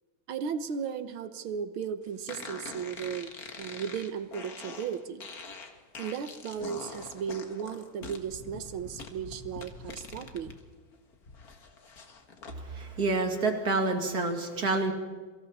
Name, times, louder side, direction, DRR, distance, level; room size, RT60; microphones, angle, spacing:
voice 1, 0.3-3.3 3.6-5.3 6.0-10.6, right 7 dB, 80° right, 11 dB, 2.0 m, -35 dB
sound 1, 2.3-10.6 10.9-12.6, left 4 dB, 45° left, 2.1 m, -44 dB
voice 2, 12.6-14.9, right 3 dB, 50° right, 4 dB, 2.8 m, -28 dB
27.5 x 24.5 x 4.2 m, 1.5 s
omnidirectional pair, 2.2 m